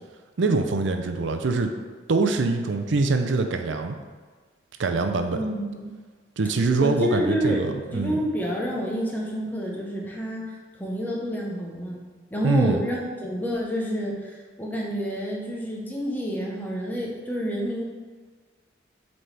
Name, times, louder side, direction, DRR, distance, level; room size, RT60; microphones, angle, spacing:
voice 1, 0.4-1.7 2.1-4.0 4.8-5.4 6.4-8.2 12.4-12.8, right 3 dB, 75° right, 6 dB, 0.5 m, -24 dB
voice 2, 5.3-5.9 6.8-10.5 10.8-17.8, equal, 10° left, -2 dB, 0.9 m, -29 dB
7.6 x 4.1 x 3.3 m, 1.5 s
head